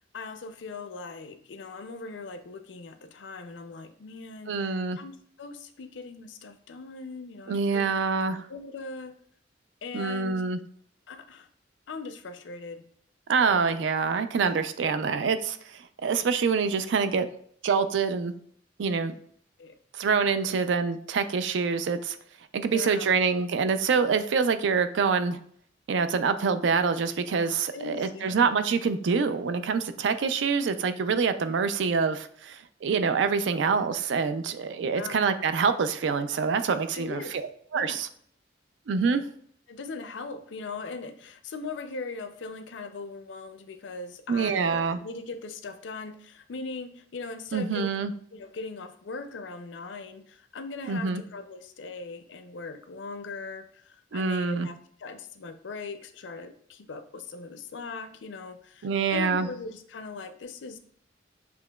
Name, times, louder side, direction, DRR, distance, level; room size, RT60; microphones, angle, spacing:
voice 1, 0.1-7.9 8.5-9.2 9.8-10.4 11.1-11.5 11.9-12.9 13.3-13.8 19.6-19.8 22.7-23.2 27.7-28.4 34.9-35.2 36.9-37.4 37.7-38.0 39.1-39.2 39.7-60.8, left 3 dB, 75° left, 9 dB, 0.5 m, -40 dB
voice 2, 4.5-5.0 7.5-8.5 9.9-10.6 13.3-15.6 16.0-17.3 17.6-18.3 18.8-19.1 20.0-22.2 22.5-25.4 25.9-37.5 37.7-38.1 38.9-39.2 44.3-45.0 47.5-48.1 50.9-51.2 54.1-54.7 58.8-59.5, right 5 dB, 75° right, 10 dB, 0.4 m, -26 dB
6.9 x 2.9 x 2.2 m, 0.62 s
head